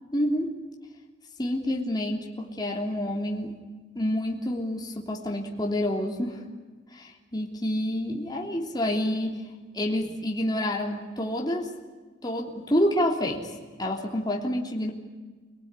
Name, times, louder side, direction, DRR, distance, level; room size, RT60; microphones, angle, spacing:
voice 1, 0.1-0.5 1.4-3.5 3.9-6.4 6.9-9.4 9.7-11.7 12.2-13.5 13.8-14.9, left 1 dB, 20° left, 0 dB, 3.3 m, -28 dB
27.5 x 18.5 x 9.8 m, 1.4 s
head